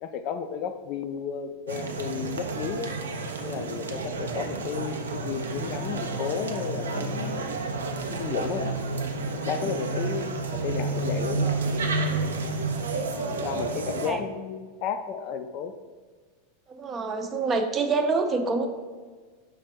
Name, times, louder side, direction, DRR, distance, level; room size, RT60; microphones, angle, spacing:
voice 1, 0.0-2.9 3.4-7.4 8.1-8.7 9.4-11.5 13.4-15.7, left 7 dB, 55° left, 8 dB, 0.3 m, -33 dB
sound 1, 1.7-14.1, right 3 dB, 90° right, 0.4 m, -30 dB
voice 2, 13.1-13.6 14.0-14.2 16.7-18.7, right 4 dB, 30° right, 6 dB, 0.5 m, -27 dB
5.0 x 2.2 x 4.4 m, 1.5 s
hypercardioid pair, 105°, 0 cm